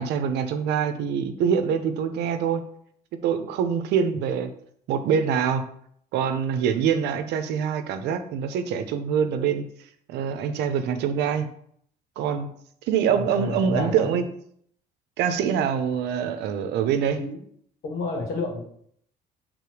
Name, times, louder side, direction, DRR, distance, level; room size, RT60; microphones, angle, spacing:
voice 1, 0.0-2.6 3.2-4.5 4.9-5.7 6.1-9.7 10.1-11.5 12.2-12.5 12.9-14.3 15.2-17.2, right 7 dB, 80° right, 9 dB, 0.8 m, -24 dB
voice 2, 13.1-14.2 17.1-17.4 17.8-18.6, left 3 dB, 80° left, -1 dB, 2.3 m, -30 dB
6.9 x 3.8 x 4.8 m, 0.66 s
cardioid pair, 110°, 17 cm